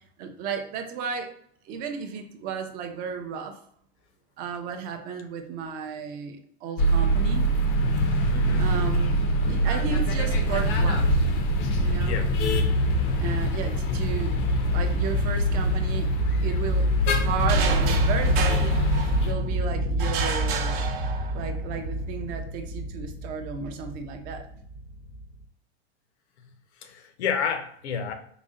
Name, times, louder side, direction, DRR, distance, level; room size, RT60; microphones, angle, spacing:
voice 1, 0.2-1.3 1.6-3.6 4.4-7.5 8.6-9.1 9.5-11.1 11.8-12.2 13.2-16.1 16.4-18.8 19.2-20.9 21.3-24.5, right 6 dB, 30° right, 5 dB, 0.4 m, -34 dB
sound 1, 6.8-19.3, equal, 35° left, 0.5 m, -24 dB
voice 2, 8.3-8.7 12.0-12.3 26.8-28.1, left 6 dB, 90° left, 7 dB, 0.8 m, -30 dB
sound 2, 8.4-25.4, right 1 dB, 85° right, 0.9 m, -29 dB
sound 3, 17.5-19.5 20.0-21.6, right 6 dB, 60° right, 0.7 m, -31 dB
4.0 x 2.1 x 3.6 m, 0.65 s
supercardioid pair, 150°, 33 cm